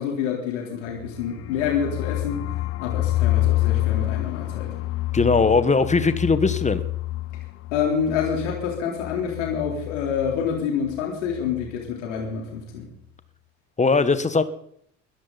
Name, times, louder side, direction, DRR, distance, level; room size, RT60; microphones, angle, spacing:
voice 1, 0.0-2.5 2.8-4.7 7.7-12.9, left 7 dB, 70° left, -1 dB, 4.0 m, -27 dB
sound 1, 1.0-10.6 10.9-11.0 11.3-11.7, left 16 dB, 40° left, 0.6 m, -28 dB
voice 2, 5.1-6.8 13.8-14.4, left 4 dB, 20° left, 12 dB, 1.5 m, -19 dB
21.5 x 14.5 x 4.2 m, 0.67 s
figure-of-eight pair, 60°, 37 cm